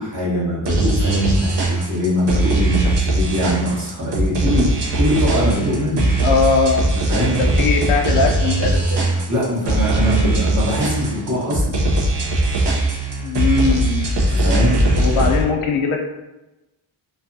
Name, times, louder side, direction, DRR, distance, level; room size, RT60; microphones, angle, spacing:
voice 1, 0.0-6.1 7.1-7.4 9.3-11.7 14.1-14.8, equal, 35° right, -7 dB, 1.2 m, -22 dB
sound 1, 0.6-15.4, right 2 dB, 60° right, 0.8 m, -19 dB
voice 2, 6.2-6.9 7.2-9.0 13.2-14.1 14.9-16.0, left 4 dB, 85° left, 1 dB, 0.6 m, -20 dB
2.6 x 2.3 x 2.6 m, 1.0 s
cardioid pair, 80°, 48 cm